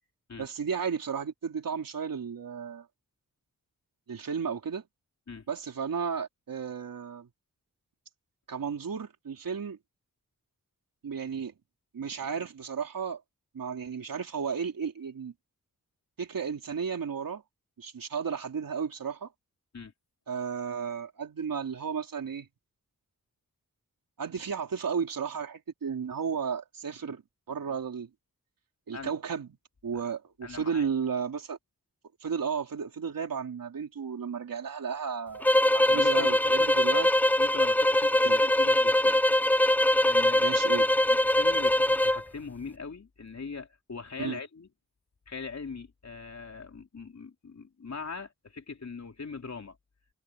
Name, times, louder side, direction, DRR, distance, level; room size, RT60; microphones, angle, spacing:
voice 1, 0.4-2.9 4.1-4.8 5.5-7.3 8.5-9.8 11.0-11.5 11.9-13.2 13.5-15.3 16.2-17.4 17.8-19.3 20.3-22.5 24.2-27.2 27.5-28.1 28.9-29.5 29.8-31.6 32.2-37.1 38.2-38.4 40.4-40.9 44.2-44.4, right 6 dB, 85° right, 3.5 m, -33 dB
voice 2, 30.4-30.9 35.9-36.7 37.4-39.2 40.0-40.6 41.1-44.7 45.3-49.8, left 5 dB, 55° left, 3.4 m, -41 dB
sound 1, 35.4-42.2, left 1 dB, 5° left, 0.5 m, -22 dB
wide cardioid pair, 75°, 33 cm